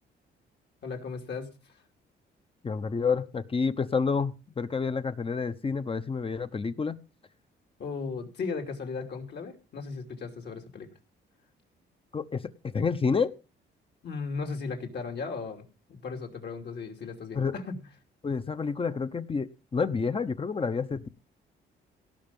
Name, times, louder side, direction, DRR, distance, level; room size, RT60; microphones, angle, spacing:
voice 1, 0.8-1.5 7.8-10.9 14.0-15.6 15.9-17.9, left 4 dB, 60° left, 3 dB, 2.9 m, -36 dB
voice 2, 2.6-7.0 12.1-13.3 17.3-17.5 18.2-21.1, left 5 dB, 30° left, 12 dB, 0.9 m, -29 dB
17.5 x 6.0 x 5.4 m, 0.33 s
cardioid pair, 90°, 20 cm